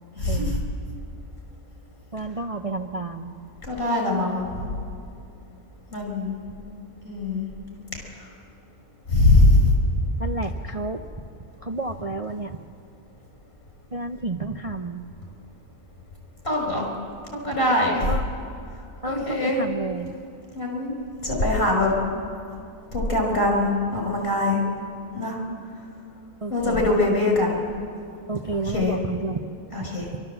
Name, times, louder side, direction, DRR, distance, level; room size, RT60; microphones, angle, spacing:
voice 1, 0.2-0.6 3.6-4.5 5.9-6.3 7.0-7.5 9.1-9.7 16.4-16.9 17.3-18.1 19.0-19.6 20.5-20.9 21.2-21.9 22.9-24.6 25.1-25.4 26.5-27.6 28.7-29.0 29.7-30.1, left 2 dB, 45° left, 0 dB, 5.6 m, -22 dB
voice 2, 2.1-3.3 10.2-11.0 11.6-12.6 13.9-15.0 18.1-18.3 19.0-20.2 26.4-26.9 28.3-29.4 29.8-29.9, right 3 dB, 40° right, 4 dB, 0.5 m, -30 dB
27.5 x 12.5 x 7.8 m, 2.6 s
omnidirectional pair, 1.5 m